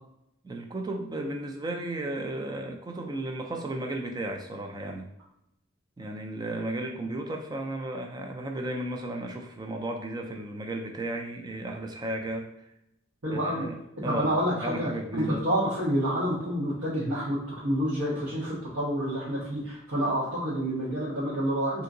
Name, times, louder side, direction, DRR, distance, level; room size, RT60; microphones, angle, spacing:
voice 1, 0.4-5.1 6.0-12.5 13.3-14.3 14.6-15.4, right 1 dB, 20° right, 3 dB, 0.3 m, -34 dB
voice 2, 13.2-13.7 14.0-21.8, equal, 80° right, -10 dB, 1.1 m, -28 dB
3.5 x 2.8 x 2.6 m, 0.81 s
head